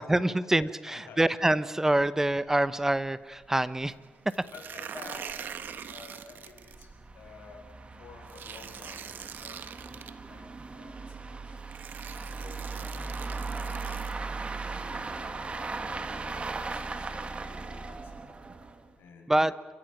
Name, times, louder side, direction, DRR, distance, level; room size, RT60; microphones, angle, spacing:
voice 1, 0.0-3.9 4.2-4.5 19.3-19.5, right 1 dB, 10° right, 15 dB, 0.8 m, -26 dB
voice 2, 0.9-1.2 4.5-6.9 7.1-7.7 8.0-11.6 12.0-13.2 13.5-13.7 14.6-18.3 19.0-19.5, left 4 dB, 80° left, 2 dB, 6.5 m, -51 dB
sound 1, 2.5-2.6 2.9-3.0 3.4-3.5 3.8-3.9 4.6-18.9, right 3 dB, 35° right, 1.9 m, -38 dB
sound 2, 4.3-6.8 8.3-10.1 11.1-11.2 11.7-14.1, right 8 dB, 65° right, 1.3 m, -43 dB
28.5 x 14.5 x 9.1 m, 1.5 s
cardioid pair, 90°, 4 cm